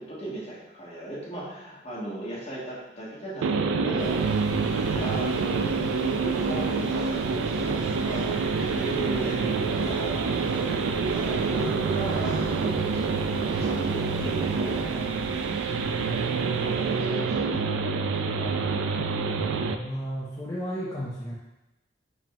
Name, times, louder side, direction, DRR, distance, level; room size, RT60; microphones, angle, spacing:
voice 1, 0.0-4.2 4.9-14.9 16.6-18.9, right 2 dB, 35° left, -7 dB, 1.2 m, -37 dB
sound 1, 3.4-19.8, right 4 dB, 90° right, 0.3 m, -27 dB
sound 2, 4.0-17.3, equal, 5° right, 0.9 m, -40 dB
voice 2, 19.7-21.3, equal, 20° left, -7 dB, 0.5 m, -33 dB
4.9 x 2.1 x 3.5 m, 1.0 s
head